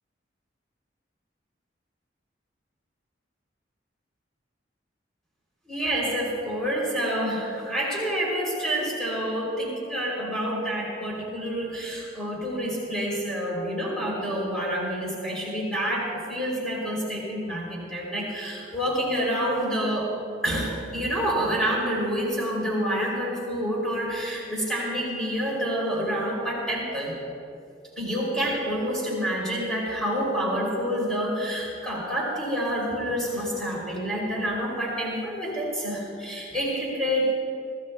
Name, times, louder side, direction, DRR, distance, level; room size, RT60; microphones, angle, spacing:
voice 1, 5.7-20.1 20.4-27.2 28.0-37.3, equal, 5° left, -5 dB, 3.0 m, -28 dB
24.0 x 15.5 x 2.2 m, 2.5 s
head